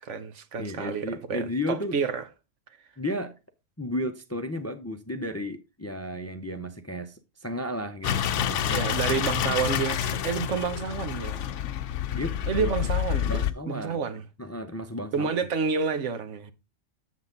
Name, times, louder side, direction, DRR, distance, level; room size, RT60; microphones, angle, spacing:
voice 1, 0.0-2.2 8.7-11.5 12.5-14.2 15.1-16.5, right 6 dB, 75° right, 1.3 m, -29 dB
voice 2, 0.6-2.0 3.0-3.4 3.8-8.9 10.5-10.6 12.1-12.7 13.2-14.0 14.4-15.3, left 1 dB, 20° left, 0.5 m, -34 dB
sound 1, 8.0-13.5, left 10 dB, 75° left, 1.0 m, -28 dB
7.8 x 7.4 x 3.8 m
omnidirectional pair, 1.3 m